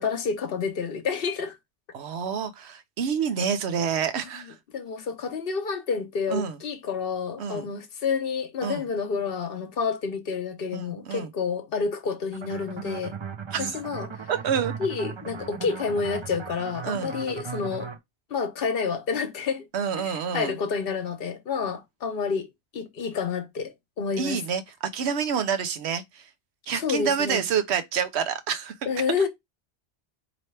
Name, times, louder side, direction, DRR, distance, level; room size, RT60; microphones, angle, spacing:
voice 1, 0.0-1.6 4.3-13.1 13.6-14.3 14.6-17.9 18.3-19.7 20.0-24.4 26.8-27.4 28.9-29.3, left 5 dB, 60° left, 1.0 m, -29 dB
voice 2, 1.9-4.6 6.3-6.6 7.4-7.7 8.6-8.9 10.7-11.3 13.5-13.7 14.3-14.7 16.8-17.1 19.7-20.5 24.2-24.6 24.9-26.3 26.7-28.8, right 7 dB, 75° right, 1.0 m, -28 dB
sound 1, 12.3-18.0, right 6 dB, 35° right, 0.5 m, -37 dB
4.3 x 2.9 x 3.2 m
omnidirectional pair, 1.1 m